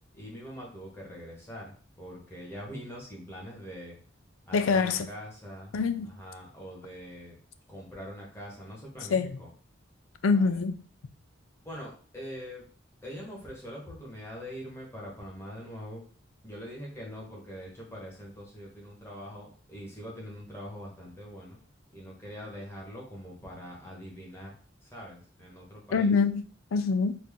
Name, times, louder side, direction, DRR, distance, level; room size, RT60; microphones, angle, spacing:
voice 1, 0.1-4.0 4.4-5.7 6.1-7.4 7.7-9.5 10.3-10.6 11.6-12.7 13.0-16.0 16.4-21.6 21.9-24.5 24.8-26.1, equal, 15° left, -3 dB, 1.4 m, -43 dB
voice 2, 4.5-5.1 5.7-6.1 9.1-9.4 10.2-10.8 25.9-26.4 26.7-27.2, left 4 dB, 90° left, 11 dB, 0.4 m, -25 dB
4.2 x 2.5 x 3.6 m, 0.41 s
head